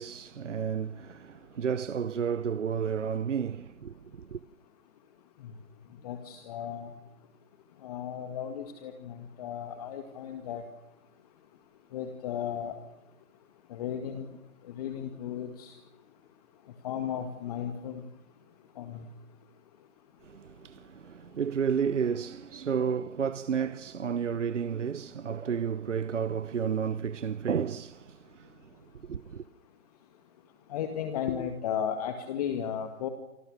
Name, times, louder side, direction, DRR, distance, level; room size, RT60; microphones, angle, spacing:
voice 1, 0.0-4.4 20.3-28.5 29.1-29.4, right 7 dB, 60° right, 1.0 m, -32 dB
voice 2, 6.0-7.0 7.8-10.6 11.9-12.7 13.7-14.3 14.7-15.8 16.8-18.0 18.8-19.1 30.7-33.1, left 9 dB, 25° left, 2.0 m, -35 dB
28.0 x 26.5 x 6.5 m
figure-of-eight pair, 140°, 42 cm